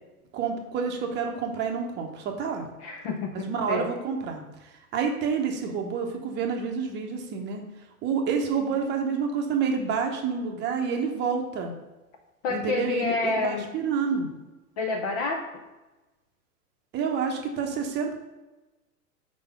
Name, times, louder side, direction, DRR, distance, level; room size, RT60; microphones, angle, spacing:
voice 1, 0.3-2.7 3.3-4.4 4.9-7.6 8.0-11.7 12.5-14.3 16.9-18.1, right 6 dB, 25° right, 3 dB, 0.9 m, -28 dB
voice 2, 2.8-3.9 12.4-13.7 14.8-15.4, left 3 dB, 25° left, 3 dB, 0.5 m, -28 dB
4.9 x 4.2 x 5.5 m, 1.1 s
figure-of-eight pair, 110°, 46 cm